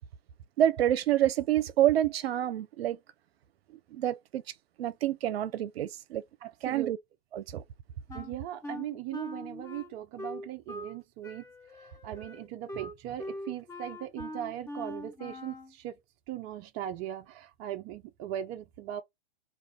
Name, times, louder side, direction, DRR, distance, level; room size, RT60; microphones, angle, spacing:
voice 1, 0.6-3.0 3.9-4.4 4.8-6.2 6.6-7.0 7.3-7.6, right 12 dB, 70° right, 0.7 m, -27 dB
voice 2, 6.4-6.9 8.1-11.5 11.7-15.9 16.3-19.0, right 12 dB, 30° right, 0.5 m, -39 dB
Wind instrument woodwind instrument, 8.1-11.0 11.2-15.7, left 1 dB, 10° left, 0.7 m, -42 dB
2.5 x 2.5 x 3.4 m
hypercardioid pair, 130°, 31 cm